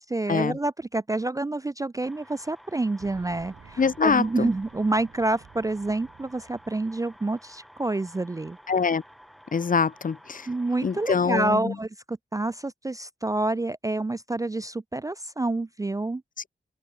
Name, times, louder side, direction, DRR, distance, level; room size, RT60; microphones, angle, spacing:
voice 1, 0.0-8.6 10.5-16.2, right 2 dB, 15° right, 0.4 m, -28 dB
sound 1, 2.0-11.4, equal, ahead, 6.4 m, -52 dB
Boom, 3.0-7.7 8.0-8.1 9.2-9.3, right 7 dB, 85° right, 3.1 m, -52 dB
voice 2, 3.8-4.5 8.7-9.0 9.5-10.5 10.8-11.7, left 5 dB, 45° left, 0.7 m, -24 dB
cardioid pair, 60°, 20 cm